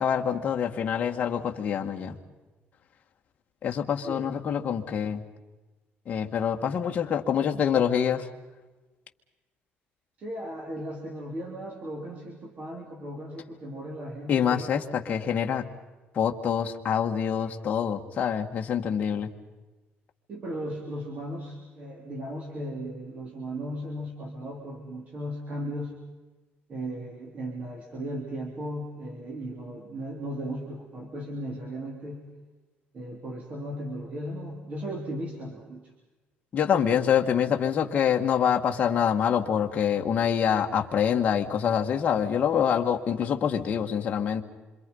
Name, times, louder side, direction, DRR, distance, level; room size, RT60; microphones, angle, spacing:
voice 1, 0.0-2.2 3.6-5.2 6.1-8.3 14.3-15.6 16.1-19.3 36.5-44.4, left 8 dB, 35° left, 3 dB, 1.9 m, -26 dB
voice 2, 10.2-14.6 20.3-26.0 26.7-32.3 32.9-35.9, equal, 35° right, 0 dB, 3.4 m, -36 dB
27.5 x 26.5 x 5.6 m, 1.2 s
cardioid pair, 160°, 4 cm